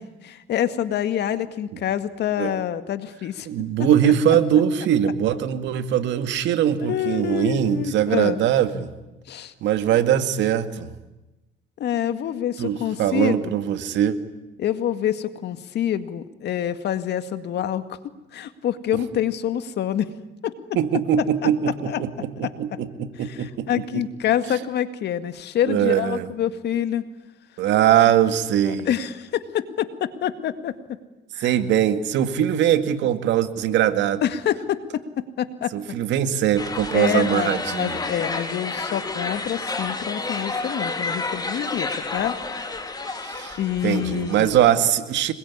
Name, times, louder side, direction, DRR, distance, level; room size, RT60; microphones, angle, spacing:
voice 1, 0.0-3.5 3.8-4.1 6.9-8.4 9.3-9.5 11.8-13.5 14.6-18.0 18.3-20.1 20.4-20.5 21.4-21.5 21.8-22.0 22.4-22.5 23.2-27.0 28.6-30.7 31.3-31.6 34.2-35.0 35.4-35.7 36.9-42.4 43.6-44.5, left 10 dB, 65° left, 11 dB, 2.0 m, -26 dB
voice 2, 3.5-8.9 9.6-10.9 12.6-14.2 20.8-23.7 23.9-24.0 25.7-26.3 27.6-28.9 31.4-34.2 35.7-38.0 43.2-43.6 43.8-45.3, right 10 dB, 75° right, 10 dB, 2.2 m, -21 dB
sound 1, 36.6-44.7, left 3 dB, 20° left, 3.9 m, -30 dB
26.5 x 22.0 x 9.9 m, 1.0 s
cardioid pair, 110°, 19 cm